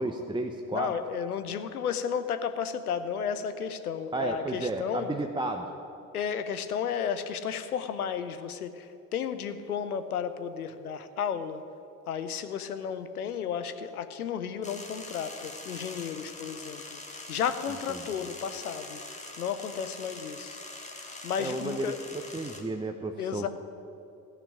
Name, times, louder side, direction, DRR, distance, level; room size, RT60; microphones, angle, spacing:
voice 1, 0.0-0.9 4.1-5.7 17.9-18.0 21.4-23.5, right 2 dB, 10° right, 4 dB, 0.8 m, -32 dB
voice 2, 0.7-5.1 6.1-11.6 12.1-19.0 19.4-20.6 21.0-22.0 23.2-23.5, left 7 dB, 90° left, 10 dB, 0.7 m, -33 dB
sound 1, 14.6-22.6, left 2 dB, 15° left, 2.0 m, -43 dB
14.0 x 6.0 x 9.9 m, 2.7 s
figure-of-eight pair, 50°, 43 cm